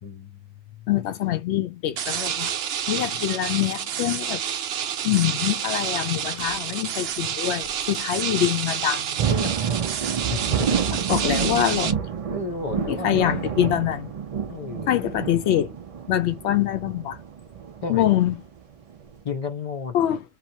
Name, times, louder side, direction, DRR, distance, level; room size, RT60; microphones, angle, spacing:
voice 1, 0.0-0.9 10.3-10.8 12.3-13.6 14.5-15.1 17.8-18.1 19.2-20.0, left 5 dB, 45° left, 0.5 m, -33 dB
voice 2, 0.9-2.5 2.9-4.4 5.0-9.8 10.9-12.0 12.9-14.1 14.9-15.7 16.1-17.2 17.9-18.4 19.9-20.2, left 11 dB, 80° left, 0.8 m, -24 dB
sound 1, 2.0-11.9, right 8 dB, 70° right, 0.8 m, -29 dB
sound 2, 6.2-6.5 7.2-7.3 7.6-7.7 8.9-19.2, right 7 dB, 55° right, 0.4 m, -29 dB
2.8 x 2.1 x 2.6 m
omnidirectional pair, 1.1 m